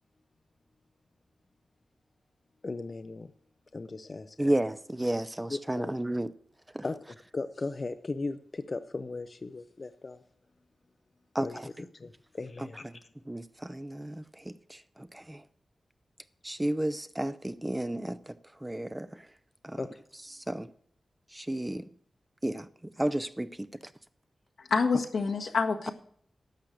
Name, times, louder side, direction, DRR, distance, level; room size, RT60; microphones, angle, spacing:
voice 1, 2.6-3.3 3.7-4.5 5.5-5.9 6.8-7.0 7.3-10.2 11.4-11.6 11.9-12.8 19.8-20.0, left 3 dB, 40° left, 0.6 m, -37 dB
voice 2, 4.4-6.3 6.7-6.8 11.3-11.7 12.6-13.0 13.3-15.4 16.4-19.3 19.6-19.8 20.3-20.7 21.3-21.9 22.4-23.9, right 1 dB, 15° right, 0.6 m, -33 dB
voice 3, 24.7-25.9, left 4 dB, 85° left, 1.7 m, -27 dB
12.0 x 6.6 x 7.8 m
wide cardioid pair, 90°, 0 cm